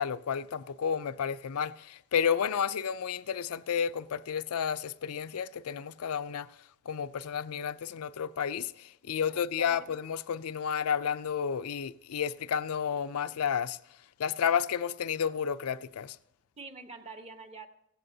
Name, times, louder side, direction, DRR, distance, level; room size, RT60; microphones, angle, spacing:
voice 1, 0.0-6.5 6.9-13.8 14.2-16.2, left 7 dB, 80° left, 0.4 m, -31 dB
voice 2, 9.0-9.9 16.6-17.7, right 3 dB, 25° right, 0.9 m, -47 dB
16.5 x 15.5 x 2.7 m
head